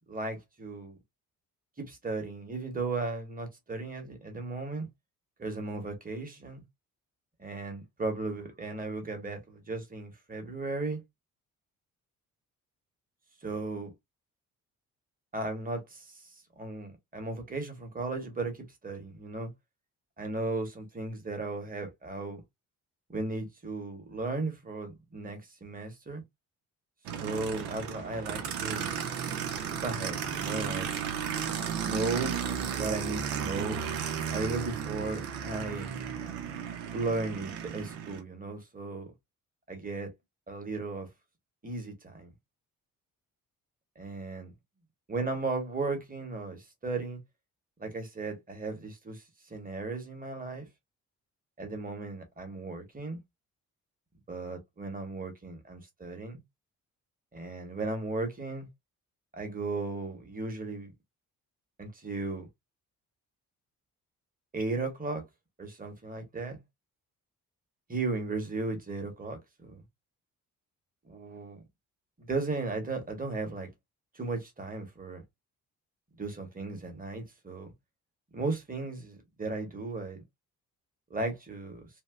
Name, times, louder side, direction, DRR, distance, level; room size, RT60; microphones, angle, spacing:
voice 1, 0.1-1.0 1.8-4.9 5.4-6.6 7.4-11.0 13.4-13.9 15.3-16.1 16.6-19.5 20.2-22.4 23.1-26.2 27.2-29.0 29.8-30.9 31.8-32.4 32.8-33.8 34.3-35.9 36.9-39.1 39.7-40.1 40.5-41.1 41.6-42.3 44.0-44.5 45.1-47.2 47.8-49.2 49.5-50.7 51.6-53.2 54.3-56.4 57.3-58.7 59.3-60.9 61.8-62.5 64.5-65.2 65.6-66.6 67.9-69.8 71.0-71.6 72.2-73.7 74.1-75.2 76.2-77.7 78.3-80.2 81.1-81.8, right 3 dB, 20° right, 1.4 m, -35 dB
Aircraft, 27.1-38.2, right 8 dB, 60° right, 0.9 m, -34 dB
2.9 x 2.8 x 2.4 m
figure-of-eight pair, 40°, 44 cm